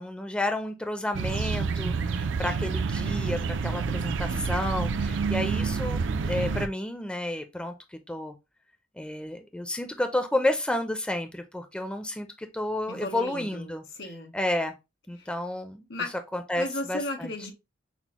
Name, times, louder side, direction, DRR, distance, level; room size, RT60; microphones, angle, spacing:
voice 1, 0.0-6.0 6.3-7.7 8.1-8.3 9.0-13.8 14.3-14.7 15.1-15.9 16.3-17.3, left 1 dB, 5° left, 0.4 m, -31 dB
sound 1, 1.1-6.7, right 5 dB, 70° right, 0.4 m, -28 dB
voice 2, 12.9-14.3 15.2-15.3 15.9-16.1 16.6-17.5, left 2 dB, 75° left, 1.5 m, -35 dB
6.0 x 2.0 x 2.9 m
head